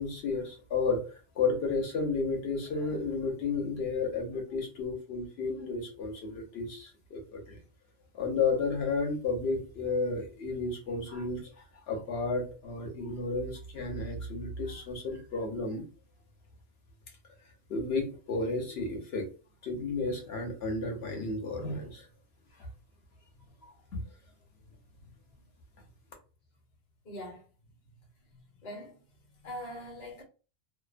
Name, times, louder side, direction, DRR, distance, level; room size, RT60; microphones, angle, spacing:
voice 1, 0.0-7.6 8.1-15.8 17.7-19.3 19.6-22.1 23.7-24.0, left 3 dB, 60° left, 1.0 m, -32 dB
voice 2, 27.0-27.5 28.2-29.0 29.4-30.2, left 1 dB, 40° left, 0.9 m, -43 dB
2.7 x 2.1 x 2.4 m
omnidirectional pair, 1.2 m